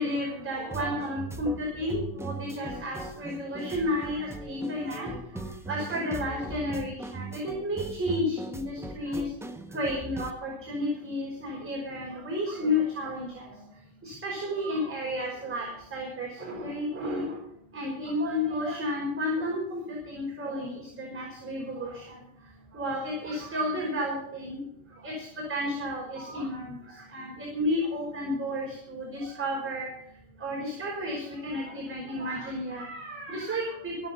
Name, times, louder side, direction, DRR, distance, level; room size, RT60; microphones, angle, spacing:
voice 1, 0.0-5.1 5.7-9.2 9.7-13.5 14.0-17.4 17.7-21.9 22.7-24.6 25.0-25.1 25.5-26.8 27.1-29.9 30.4-34.1, left 1 dB, 25° right, -2 dB, 5.4 m, -32 dB
sound 1, 0.7-10.3, right 2 dB, 5° right, 1.4 m, -39 dB
17.5 x 8.1 x 5.7 m, 0.74 s
supercardioid pair, 95°, 46 cm